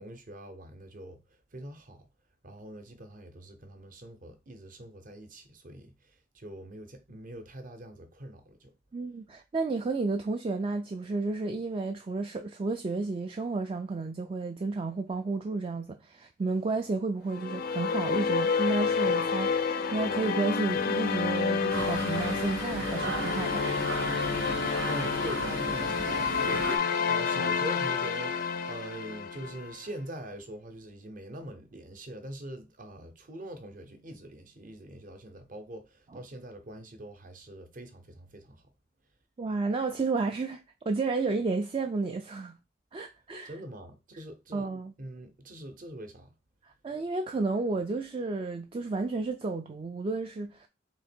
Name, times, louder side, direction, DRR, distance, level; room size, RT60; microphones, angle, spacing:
voice 1, 0.0-2.1 2.4-8.7 24.5-38.7 43.4-44.7 45.0-46.3, right 1 dB, 45° right, 0.7 m, -43 dB
voice 2, 8.9-23.7 39.4-42.6 42.9-43.5 44.5-44.9 46.6-50.7, right 3 dB, 30° right, 0.3 m, -32 dB
sound 1, 17.3-29.7, left 5 dB, 50° left, 0.4 m, -29 dB
sound 2, 21.7-26.8, right 4 dB, 80° right, 0.6 m, -36 dB
3.6 x 2.9 x 4.3 m
head